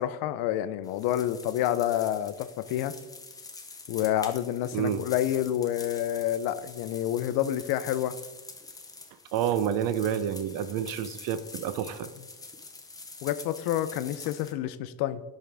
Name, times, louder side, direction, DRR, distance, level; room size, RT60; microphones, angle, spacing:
voice 1, 0.0-2.9 3.9-8.2 13.2-15.2, left 12 dB, 80° left, 14 dB, 0.5 m, -28 dB
sound 1, 0.8-14.5, left 3 dB, 10° left, 0.5 m, -46 dB
voice 2, 4.7-5.0 9.3-12.1, right 9 dB, 65° right, 12 dB, 0.6 m, -29 dB
10.5 x 3.7 x 3.3 m, 1.2 s
cardioid pair, 135°, 37 cm